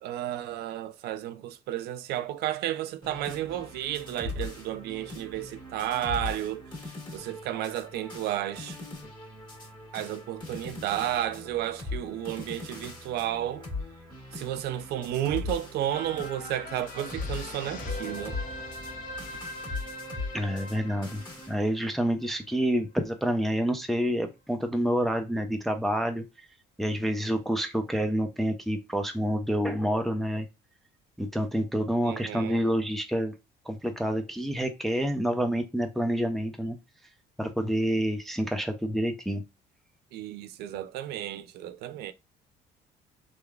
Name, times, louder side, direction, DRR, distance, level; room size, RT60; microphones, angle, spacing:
voice 1, 0.0-8.8 9.9-13.7 14.3-18.4 32.0-32.6 40.1-42.1, right 12 dB, 75° right, 0.4 m, -32 dB
sound 1, 3.0-21.5, left 3 dB, 25° left, 1.5 m, -40 dB
sound 2, 15.9-22.5 23.0-23.1, left 2 dB, 55° left, 0.8 m, -41 dB
voice 2, 20.3-21.2 21.5-26.2 26.8-30.5 31.2-33.3 33.7-36.8 37.4-39.4, equal, ahead, 0.4 m, -28 dB
3.0 x 2.2 x 2.3 m
cardioid pair, 110°, 17 cm